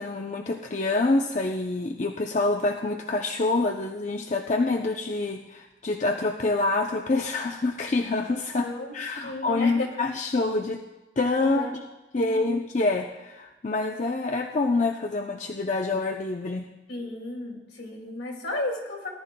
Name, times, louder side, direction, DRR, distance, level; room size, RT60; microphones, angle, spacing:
voice 1, 0.0-10.8 11.2-11.6 12.1-16.7, left 3 dB, 40° left, 2 dB, 0.5 m, -26 dB
voice 2, 8.6-8.9 9.2-9.9 11.4-11.7 12.2-12.5 16.9-19.1, left 1 dB, 70° left, 0 dB, 2.3 m, -33 dB
18.5 x 11.0 x 2.2 m, 1.1 s
head